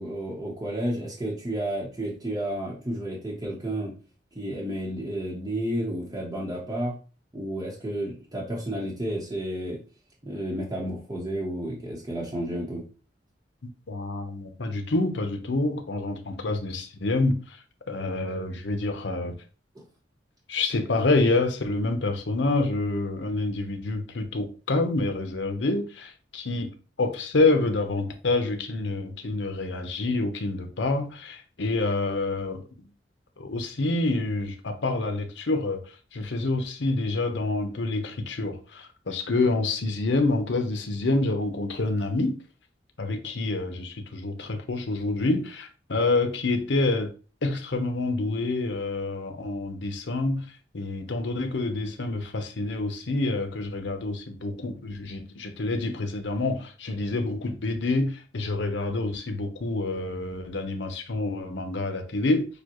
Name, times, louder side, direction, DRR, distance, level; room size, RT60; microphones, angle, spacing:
voice 1, 0.0-3.9 4.3-7.0 7.3-9.8 10.2-12.8 19.7-19.8, right 1 dB, 20° right, 1.0 m, -31 dB
voice 2, 13.6-17.6 17.9-19.4 20.5-26.7 27.0-32.9 33.4-35.8 36.1-42.4 43.0-47.1 47.4-50.4 50.7-62.5, left 2 dB, 85° left, 0.8 m, -27 dB
6.8 x 2.3 x 3.0 m
head